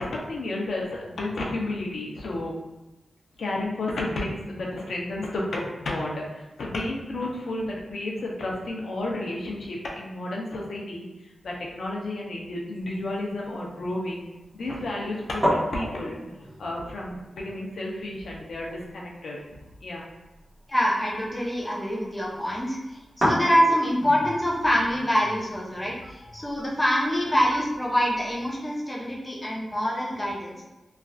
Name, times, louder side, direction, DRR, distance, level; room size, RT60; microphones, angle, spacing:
voice 1, 0.0-2.5 3.4-11.1 11.4-14.2 14.5-16.2 16.6-20.1 26.2-26.7, left 2 dB, 80° left, -2 dB, 0.7 m, -32 dB
sound 1, 12.7-28.6, equal, 30° right, 1.4 m, -35 dB
voice 2, 20.7-30.6, equal, 15° left, -5 dB, 0.8 m, -25 dB
3.2 x 2.5 x 2.4 m, 1.0 s
wide cardioid pair, 85°, 0 cm